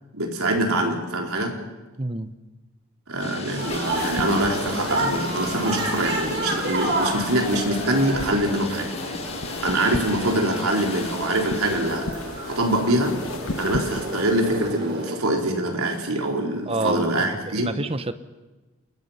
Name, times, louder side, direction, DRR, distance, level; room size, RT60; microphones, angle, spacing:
voice 1, 0.1-1.5 3.1-8.9 9.6-12.1 12.5-13.2 13.5-17.7, right 1 dB, 80° right, 2 dB, 4.0 m, -24 dB
voice 2, 2.0-2.3 16.7-17.1 17.5-18.2, right 2 dB, 25° right, 12 dB, 1.0 m, -27 dB
sound 1, 3.2-11.9, left 3 dB, 30° left, 1.6 m, -37 dB
sound 2, 3.4-15.2, right 1 dB, 50° right, 6.4 m, -31 dB
sound 3, 3.6-14.8, left 3 dB, 70° left, 1.4 m, -36 dB
29.0 x 21.5 x 5.7 m, 1.2 s
head